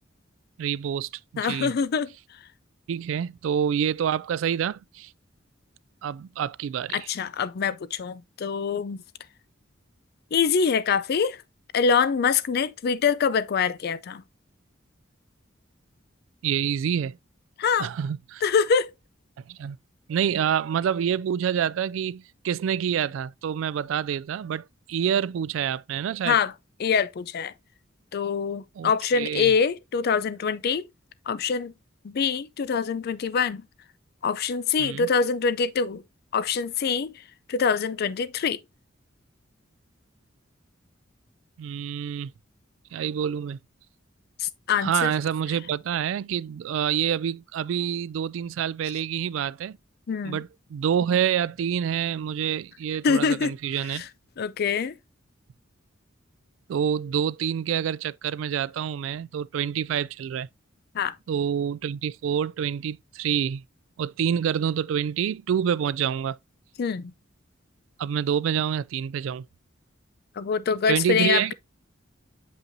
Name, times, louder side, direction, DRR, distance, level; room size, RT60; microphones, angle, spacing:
voice 1, 0.6-1.7 2.9-5.1 6.0-7.1 16.4-17.2 17.8-18.4 19.5-19.8 20.1-26.4 28.8-29.5 34.8-35.1 41.6-42.3 42.9-43.6 44.8-49.8 50.2-54.1 56.7-60.5 61.3-63.6 64.0-66.4 68.0-69.4 70.9-71.5, right 8 dB, 75° right, 0.3 m, -27 dB
voice 2, 1.4-2.1 6.9-9.0 10.3-11.4 11.7-14.2 17.6-17.9 18.4-18.9 26.2-26.5 26.8-27.5 28.1-30.8 31.3-31.7 32.0-33.6 34.2-36.0 36.3-37.1 37.5-38.6 44.4-45.1 50.1-50.4 53.0-53.5 53.9-54.1 54.4-55.0 60.9-61.1 66.8-67.1 70.4-71.5, left 6 dB, 55° left, 0.4 m, -24 dB
7.3 x 5.4 x 2.6 m
head